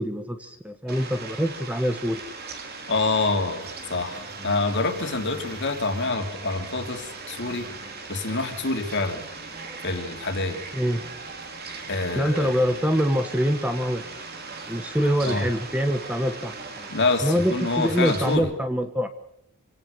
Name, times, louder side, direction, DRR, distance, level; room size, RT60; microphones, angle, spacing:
voice 1, 0.0-2.2 10.7-11.0 12.1-14.3 14.6-16.9 17.2-19.1, equal, 5° right, 8 dB, 1.2 m, -25 dB
Fowl, 0.9-18.4, right 4 dB, 45° right, 3.4 m, -39 dB
voice 2, 2.9-7.7 8.1-9.2 9.8-10.6 11.9-12.5 15.2-15.5 16.9-18.5, left 3 dB, 50° left, 5 dB, 3.0 m, -26 dB
sound 1, 3.6-14.9, equal, 25° right, 3.4 m, -48 dB
27.0 x 17.5 x 6.7 m, 0.76 s
head